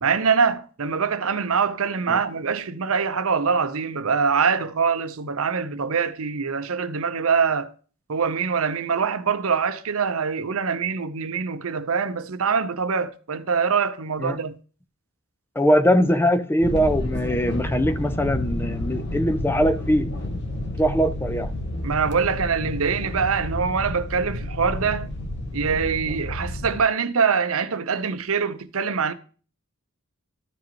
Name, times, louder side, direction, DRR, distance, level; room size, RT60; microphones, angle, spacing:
voice 1, 0.0-7.7 8.1-14.6 21.8-25.1 25.5-29.1, right 5 dB, 70° right, 0.7 m, -24 dB
voice 2, 15.6-20.1 20.8-21.5, equal, 10° left, 0.5 m, -21 dB
sound 1, 16.6-26.8, left 1 dB, 50° left, 1.1 m, -30 dB
13.0 x 4.9 x 2.9 m
head